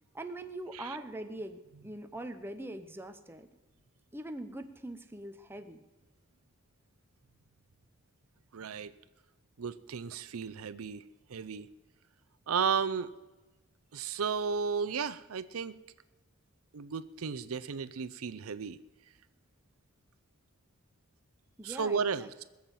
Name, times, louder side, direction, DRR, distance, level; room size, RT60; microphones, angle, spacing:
voice 1, 0.1-3.5 4.1-5.8 21.6-22.4, right 1 dB, 10° right, 7 dB, 0.8 m, -42 dB
voice 2, 8.5-8.9 9.6-11.0 11.3-11.7 12.5-13.1 13.9-15.8 16.7-18.8 21.6-22.4, right 6 dB, 85° right, 14 dB, 0.6 m, -33 dB
21.0 x 7.3 x 7.5 m, 1.1 s
head